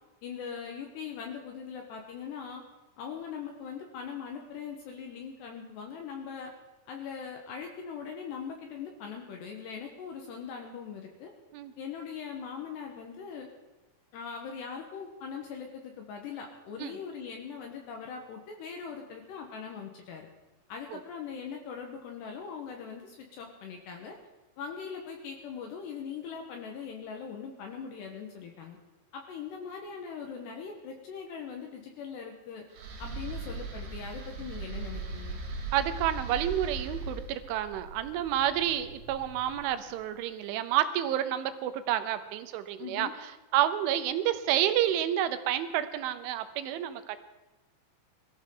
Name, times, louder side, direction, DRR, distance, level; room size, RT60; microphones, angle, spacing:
voice 1, 0.2-2.6 3.0-6.5 6.9-11.3 11.8-13.5 14.1-20.3 20.7-24.2 24.6-28.8 29.1-32.6 33.0-35.4 42.8-43.1, left 6 dB, 70° left, 2 dB, 3.1 m, -41 dB
sound 1, 32.7-39.9, right 3 dB, 60° right, 3.8 m, -39 dB
voice 2, 35.7-47.2, right 11 dB, 80° right, 10 dB, 3.2 m, -29 dB
22.0 x 14.5 x 3.9 m, 1.1 s
omnidirectional pair, 5.7 m